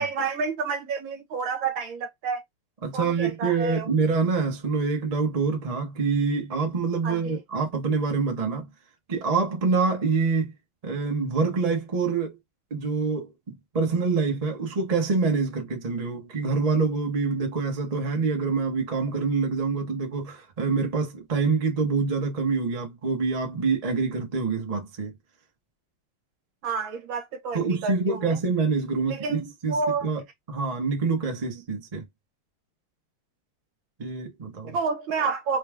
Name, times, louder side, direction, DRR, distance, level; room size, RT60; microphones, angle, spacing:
voice 1, 0.0-2.4 2.9-3.9 7.0-7.4 26.6-28.4 29.1-30.1 34.7-35.6, right 5 dB, 70° right, 1.6 m, -30 dB
voice 2, 2.8-8.7 9.1-10.5 10.8-12.4 12.7-25.1 27.5-29.8 30.0-30.2 30.5-32.0 34.0-34.8, right 4 dB, 35° right, 0.6 m, -26 dB
3.9 x 2.3 x 3.4 m
omnidirectional pair, 2.4 m